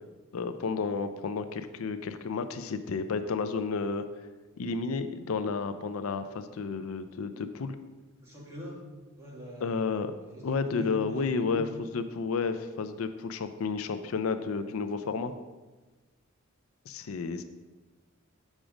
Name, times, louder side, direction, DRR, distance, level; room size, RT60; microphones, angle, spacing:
voice 1, 0.3-4.0 4.6-7.8 9.6-10.1 10.4-15.3 16.9-17.4, left 4 dB, 80° left, 10 dB, 0.4 m, -31 dB
voice 2, 8.2-8.8 9.2-9.8 10.3-11.6, left 1 dB, 15° right, -6 dB, 2.3 m, -42 dB
7.3 x 5.1 x 4.9 m, 1.2 s
head